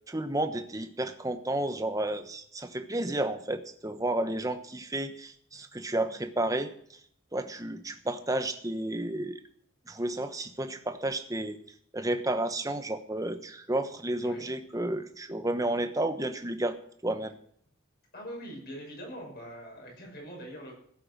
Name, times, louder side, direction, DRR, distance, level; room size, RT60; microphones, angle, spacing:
voice 1, 0.1-6.7 7.3-9.4 9.9-11.6 11.9-16.8 17.0-17.3, right 1 dB, 15° right, 8 dB, 1.0 m, -31 dB
voice 2, 18.1-20.7, equal, 50° left, -1 dB, 6.1 m, -43 dB
16.0 x 8.6 x 6.2 m, 0.66 s
head